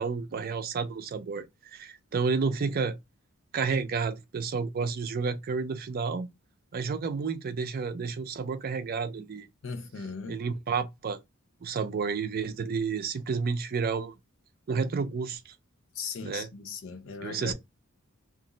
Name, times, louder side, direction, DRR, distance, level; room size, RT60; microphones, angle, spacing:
voice 1, 0.0-1.5 1.7-3.0 3.5-6.3 6.7-9.5 10.3-11.2 11.6-14.1 14.7-15.5 16.2-16.5 17.2-17.5, right 5 dB, 45° right, 0.4 m, -30 dB
voice 2, 9.6-10.4 15.9-17.5, left 5 dB, 65° left, 0.6 m, -38 dB
2.5 x 2.0 x 3.7 m
head